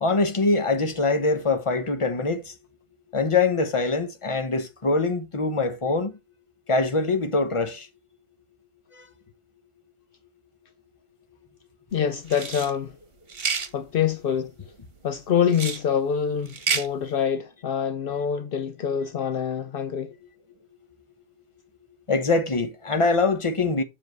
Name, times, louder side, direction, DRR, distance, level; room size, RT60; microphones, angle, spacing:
voice 1, 0.0-2.5 3.1-6.1 6.7-7.9 22.1-23.8, left 3 dB, 30° left, 1.1 m, -23 dB
voice 2, 11.9-13.0 13.7-14.5 15.0-20.1, left 8 dB, 65° left, 0.7 m, -25 dB
sound 1, 12.3-12.7 13.3-13.7 15.5-15.8 16.5-16.9, right 5 dB, 65° right, 1.3 m, -28 dB
7.2 x 3.7 x 6.5 m
omnidirectional pair, 1.0 m